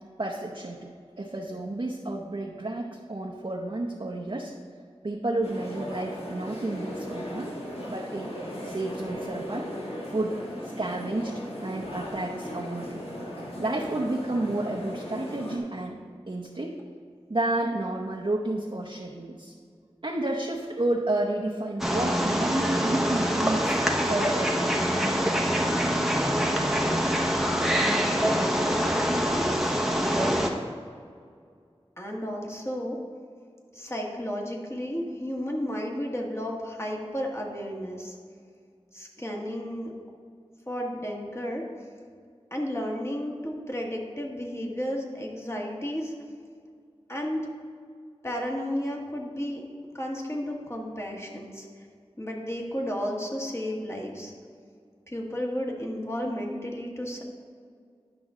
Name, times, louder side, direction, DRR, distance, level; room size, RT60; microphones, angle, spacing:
voice 1, 0.2-0.9 1.2-4.5 5.0-7.5 7.9-8.3 8.6-9.7 10.1-13.0 13.6-16.0 16.3-16.7 17.3-19.5 20.0-24.9, right 2 dB, 55° right, -3 dB, 0.8 m, -31 dB
sound 1, 5.4-15.6, equal, 65° left, 1.7 m, -37 dB
Wild animals, 21.8-30.5, equal, 5° right, 0.9 m, -25 dB
voice 2, 28.9-29.8 32.0-33.0 33.7-38.1 38.9-39.9 40.7-41.6 42.5-46.1 47.1-47.5 48.2-49.6 49.9-51.7 52.2-54.3 55.1-57.2, equal, 25° left, -1 dB, 1.5 m, -33 dB
10.5 x 6.1 x 3.7 m, 2.1 s
wide cardioid pair, 45°, 11 cm